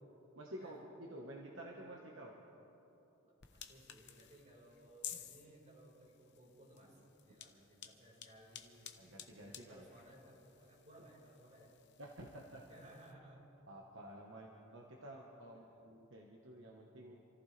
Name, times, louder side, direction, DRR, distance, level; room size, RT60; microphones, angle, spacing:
voice 1, 0.3-2.4 9.0-9.9 12.0-12.7 13.7-17.2, right 1 dB, 60° right, -1 dB, 1.4 m, -51 dB
sound 1, 3.4-13.1, left 10 dB, 55° left, 0.9 m, -55 dB
voice 2, 3.5-8.8 9.4-11.7 12.7-13.5 15.5-15.8, right 1 dB, 35° right, -5 dB, 4.7 m, -60 dB
28.0 x 14.5 x 3.4 m, 3.0 s
head